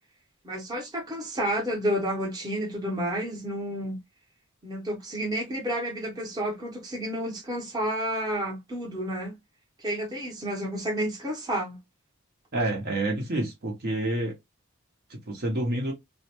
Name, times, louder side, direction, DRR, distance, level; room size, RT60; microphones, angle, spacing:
voice 1, 0.4-4.0 4.6-9.4 9.8-11.8, equal, 20° right, 0.8 m, -30 dB
voice 2, 12.5-14.3 15.1-15.9, right 1 dB, 50° right, 0.8 m, -28 dB
2.4 x 2.1 x 2.8 m
head